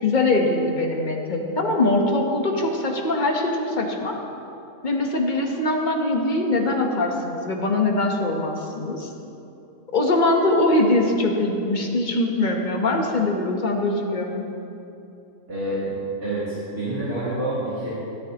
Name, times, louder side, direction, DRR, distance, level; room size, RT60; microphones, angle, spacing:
voice 1, 0.0-4.2 4.8-9.1 9.9-14.5, left 2 dB, 35° left, 1 dB, 1.0 m, -22 dB
voice 2, 15.5-15.9 16.2-16.4 16.7-17.9, right 1 dB, 40° right, -13 dB, 3.5 m, -27 dB
13.5 x 13.5 x 2.9 m, 2.7 s
omnidirectional pair, 1.8 m